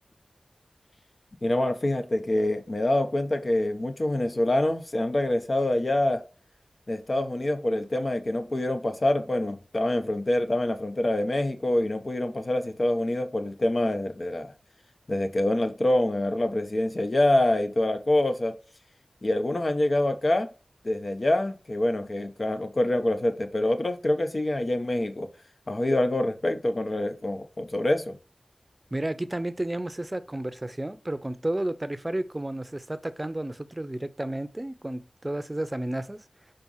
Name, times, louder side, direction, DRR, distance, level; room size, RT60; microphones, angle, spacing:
voice 1, 1.4-6.2 6.9-14.5 15.1-18.5 19.2-20.5 20.8-25.3 25.7-28.2, left 1 dB, 50° left, 1.1 m, -26 dB
voice 2, 28.9-36.2, right 1 dB, 25° right, 0.7 m, -32 dB
5.2 x 4.5 x 5.5 m
wide cardioid pair, 55°, 0 cm